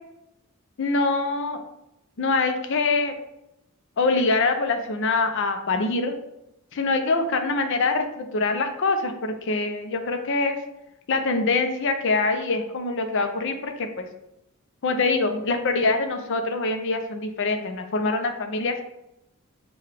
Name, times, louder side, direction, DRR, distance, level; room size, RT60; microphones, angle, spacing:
voice 1, 0.8-1.6 2.2-3.1 4.0-6.2 6.7-10.6 11.1-14.1 14.8-18.8, left 3 dB, 55° left, 6 dB, 0.5 m, -24 dB
6.5 x 2.3 x 3.3 m, 0.88 s
head